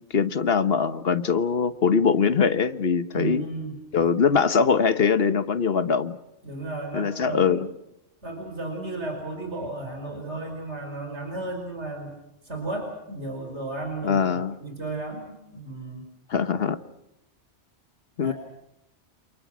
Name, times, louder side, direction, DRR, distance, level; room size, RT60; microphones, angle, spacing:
voice 1, 0.0-3.4 3.9-6.2 6.9-7.7 14.0-14.6 16.3-16.8 18.2-18.3, left 6 dB, 60° left, 12 dB, 1.4 m, -22 dB
voice 2, 3.1-3.8 6.4-7.6 8.2-12.2 12.4-16.0 18.2-18.3, right 2 dB, 80° right, 3 dB, 5.3 m, -34 dB
29.0 x 27.5 x 6.2 m, 0.84 s
omnidirectional pair, 1.2 m